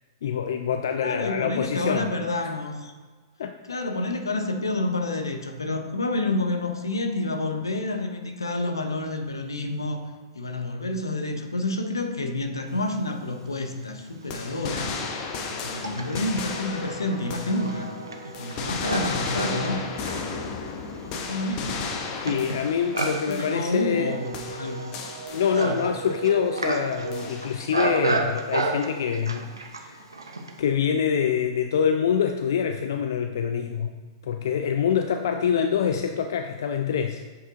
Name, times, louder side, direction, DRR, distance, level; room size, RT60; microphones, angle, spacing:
voice 1, 0.2-2.1 2.4-2.5 3.4-3.5 22.2-24.2 25.3-30.0 30.6-33.9 34.2-37.2, left 7 dB, 65° left, 6 dB, 0.4 m, -25 dB
voice 2, 1.0-2.9 3.7-10.0 10.3-14.9 15.5-17.9 18.2-19.8 21.0-21.9 23.3-24.9 25.6-25.8, left 2 dB, 85° left, 5 dB, 0.8 m, -29 dB
Livestock farm animals working animals, 13.8-13.9 14.7-30.6, right 3 dB, 85° right, 0.9 m, -32 dB
sound 1, 14.3-18.0 18.3-24.1 24.3-26.0 27.1-27.8, left 5 dB, 40° left, 0.8 m, -34 dB
7.2 x 5.1 x 3.7 m, 1.4 s
figure-of-eight pair, 110°, 2 cm